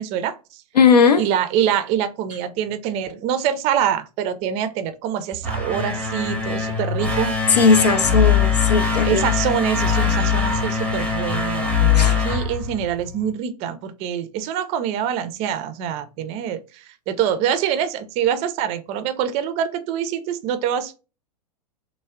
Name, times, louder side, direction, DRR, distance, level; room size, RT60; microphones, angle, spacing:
voice 1, 0.0-0.6 1.2-7.3 9.0-20.9, right 9 dB, 30° right, 0.4 m, -25 dB
voice 2, 0.7-1.2 7.5-9.2 11.9-12.2, left 5 dB, 85° left, 0.4 m, -17 dB
sound 1, 5.3-13.3, left 6 dB, 5° left, 0.7 m, -21 dB
3.3 x 2.0 x 2.2 m
figure-of-eight pair, 100°, 21 cm